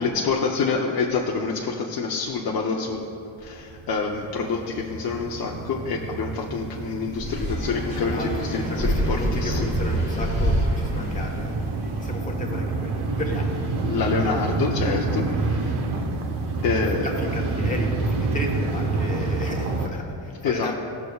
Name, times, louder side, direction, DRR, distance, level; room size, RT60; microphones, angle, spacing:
voice 1, 0.0-3.1 3.4-9.7 13.8-15.7 16.6-17.2 20.4-20.7, left 4 dB, 50° left, -1 dB, 0.6 m, -27 dB
sound 1, 2.9-3.0 3.3-19.9, right 3 dB, 60° right, 0.9 m, -28 dB
sound 2, 7.2-12.0, equal, 20° right, 1.5 m, -27 dB
voice 2, 7.9-11.6 12.0-13.7 15.4-15.5 16.1-16.2 17.0-20.7, left 1 dB, 15° left, 0 dB, 1.1 m, -33 dB
16.5 x 6.6 x 2.3 m, 2.7 s
wide cardioid pair, 165°, 45 cm